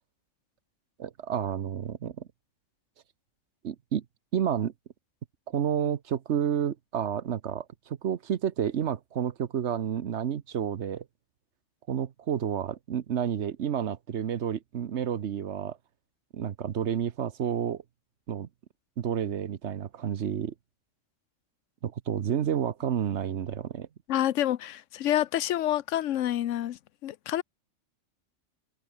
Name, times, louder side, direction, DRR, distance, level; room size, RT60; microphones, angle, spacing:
voice 1, 1.0-2.3 3.6-4.0 4.3-4.7 5.5-11.0 11.9-15.8 16.3-17.8 18.3-18.5 19.0-20.5 21.8-23.9, right 9 dB, 70° right, 1.2 m, -30 dB
voice 2, 24.1-27.4, left 12 dB, 85° left, 1.0 m, -28 dB
omnidirectional pair, 1.3 m